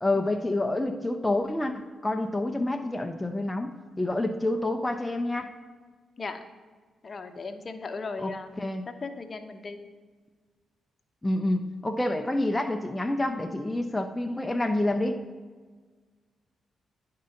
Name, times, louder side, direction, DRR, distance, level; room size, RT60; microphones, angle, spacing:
voice 1, 0.0-5.5 8.2-8.8 11.2-15.2, left 1 dB, 15° left, 5 dB, 0.5 m, -28 dB
voice 2, 7.0-8.5 8.9-9.8, left 4 dB, 45° left, 8 dB, 0.8 m, -37 dB
10.0 x 3.8 x 5.7 m, 1.4 s
cardioid pair, 65°, 0 cm